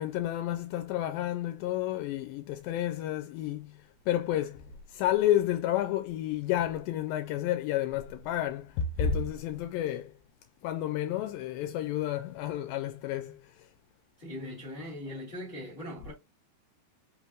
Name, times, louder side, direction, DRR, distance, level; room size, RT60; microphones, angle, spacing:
voice 1, 0.0-10.1 10.6-13.7, left 11 dB, 80° left, 2.2 m, -31 dB
voice 2, 14.2-16.1, left 1 dB, 25° left, 1.1 m, -40 dB
5.2 x 3.4 x 2.3 m
omnidirectional pair, 4.2 m